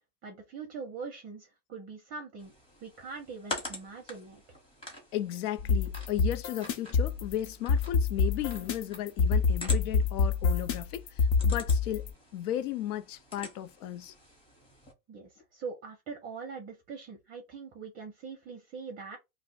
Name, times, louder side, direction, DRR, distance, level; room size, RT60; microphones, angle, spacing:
voice 1, 0.2-2.5 2.8-4.4 15.1-19.2, right 5 dB, 20° right, 0.5 m, -42 dB
sound 1, 2.4-14.9, left 2 dB, 15° left, 0.8 m, -46 dB
voice 2, 5.1-14.1, left 12 dB, 80° left, 0.6 m, -35 dB
sound 2, 5.6-12.1, left 4 dB, 45° left, 0.7 m, -27 dB
2.5 x 2.1 x 3.9 m
supercardioid pair, 145°, 43 cm